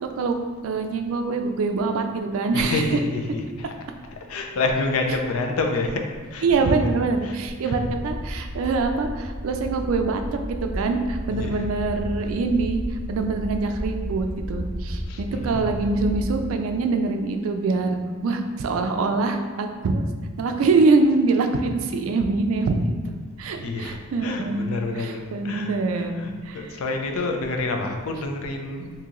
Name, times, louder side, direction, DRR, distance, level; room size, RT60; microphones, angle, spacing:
voice 1, 0.0-2.8 6.4-10.2 10.6-12.8 13.1-20.1 20.4-22.8 23.4-24.6 25.0-26.6, right 3 dB, 75° right, 6 dB, 0.4 m, -24 dB
voice 2, 2.5-3.7 4.3-6.7 7.2-7.4 7.6-7.7 11.3-11.7 15.1-15.8 23.5-28.9, left 3 dB, 85° left, 3 dB, 0.4 m, -28 dB
sound 1, 7.8-16.4, equal, 25° left, 0.9 m, -32 dB
2.9 x 2.7 x 3.6 m, 1.5 s
head